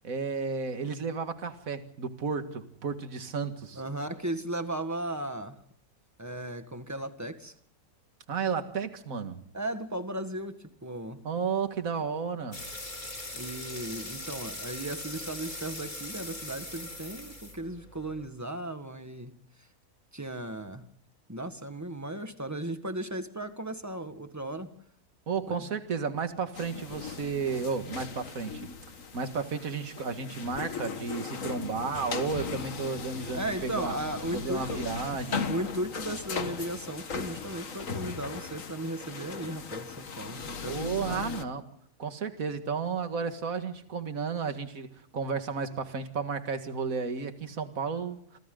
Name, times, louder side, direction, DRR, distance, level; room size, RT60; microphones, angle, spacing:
voice 1, 0.0-3.8 8.3-9.4 11.2-12.6 25.3-28.6 29.1-33.9 34.3-35.4 40.6-41.6 42.0-44.9 45.1-48.4, right 5 dB, 65° right, 2.2 m, -33 dB
voice 2, 3.7-5.6 6.2-7.5 9.5-11.2 13.3-19.3 20.1-20.8 21.3-24.7 25.5-25.7 33.3-34.9 35.5-41.2, right 1 dB, 10° right, 1.7 m, -36 dB
sound 1, 12.5-18.3, left 1 dB, 30° left, 3.5 m, -41 dB
sound 2, 26.5-41.4, left 5 dB, 60° left, 1.8 m, -38 dB
28.0 x 25.5 x 3.9 m
omnidirectional pair, 1.6 m